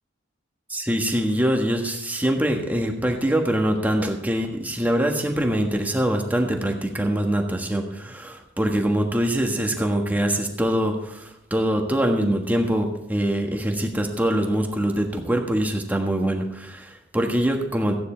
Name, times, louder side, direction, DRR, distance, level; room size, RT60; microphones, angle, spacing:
voice 1, 0.7-18.0, right 1 dB, 10° right, 2 dB, 1.4 m, -24 dB
15.0 x 9.5 x 4.5 m, 0.79 s
head